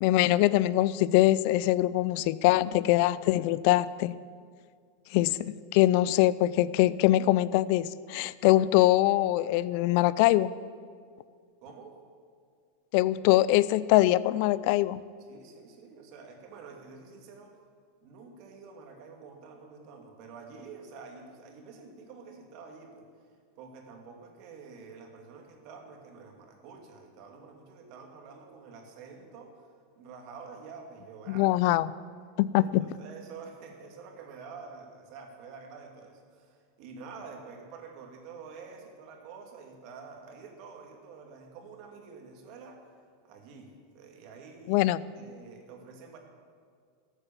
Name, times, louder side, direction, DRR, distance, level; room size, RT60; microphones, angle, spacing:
voice 1, 0.0-4.2 5.1-10.5 12.9-15.0 31.3-31.9 32.4-32.8 44.7-45.0, left 15 dB, 60° left, 19 dB, 0.4 m, -23 dB
voice 2, 11.6-12.0 15.3-17.6 18.0-23.1 23.6-29.7 30.0-31.5 32.6-42.9 43.2-46.2, right 5 dB, 55° right, 2 dB, 2.4 m, -48 dB
14.0 x 8.2 x 7.3 m, 2.1 s
supercardioid pair, 125°, 0 cm